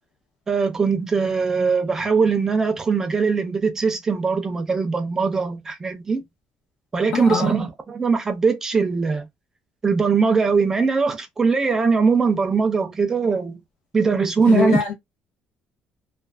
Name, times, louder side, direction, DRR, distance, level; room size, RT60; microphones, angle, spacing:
voice 1, 0.5-6.2 6.9-9.3 9.8-13.6 13.9-14.8, right 5 dB, 15° right, 0.4 m, -21 dB
voice 2, 7.1-7.5 14.5-14.9, left 6 dB, 75° left, 1.1 m, -22 dB
2.4 x 2.3 x 2.3 m
cardioid pair, 180°, 3 cm